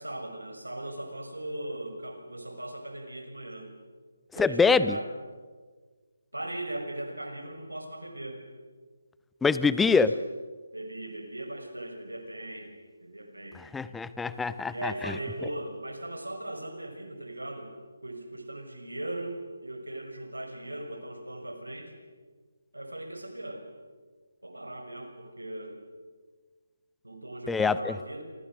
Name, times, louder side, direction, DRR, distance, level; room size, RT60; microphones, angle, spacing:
voice 1, 0.0-3.7 4.3-5.1 6.3-8.4 9.9-10.1 10.7-12.7 13.0-13.6 14.7-17.7 18.0-21.9 22.7-23.7 24.4-25.8 27.0-28.2, right 1 dB, 90° right, 5 dB, 6.3 m, -38 dB
voice 2, 4.4-5.0 9.4-10.1 13.7-15.1 27.5-28.0, left 4 dB, 5° left, 15 dB, 0.7 m, -24 dB
28.5 x 26.0 x 6.5 m, 1.5 s
figure-of-eight pair, 150°, 0 cm